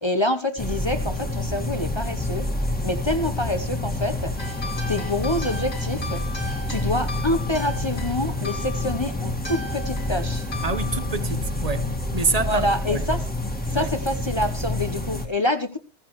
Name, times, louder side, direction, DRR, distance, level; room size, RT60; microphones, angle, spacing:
voice 1, 0.0-2.5 2.8-4.3 4.9-6.2 6.7-10.5 12.5-13.2 13.7-15.8, left 1 dB, 30° left, 0.9 m, -26 dB
sound 1, 0.6-15.3, left 1 dB, 10° left, 1.8 m, -28 dB
sound 2, 3.2-5.2 6.8-8.9 10.5-12.5, left 4 dB, 45° left, 1.4 m, -41 dB
sound 3, 4.4-12.3, left 4 dB, 70° left, 2.7 m, -38 dB
voice 2, 10.6-13.0 13.7-13.9, right 4 dB, 35° right, 1.1 m, -27 dB
14.5 x 14.5 x 3.0 m
omnidirectional pair, 1.1 m